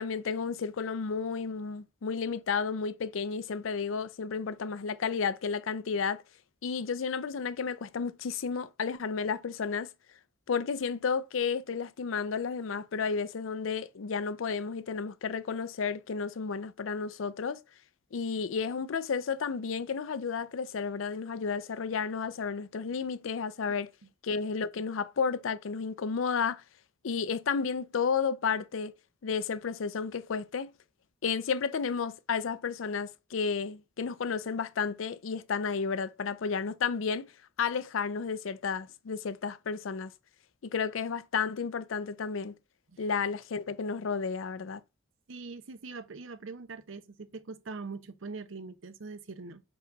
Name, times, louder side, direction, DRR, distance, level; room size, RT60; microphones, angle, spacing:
voice 1, 0.0-6.2 6.6-9.9 10.5-17.6 18.1-23.9 24.2-26.6 27.0-28.9 29.2-30.7 31.2-37.3 37.6-40.1 40.6-42.5 43.0-44.8, left 5 dB, 80° left, 0.5 m, -32 dB
voice 2, 45.3-49.6, right 4 dB, 75° right, 0.7 m, -42 dB
4.7 x 4.0 x 5.2 m
head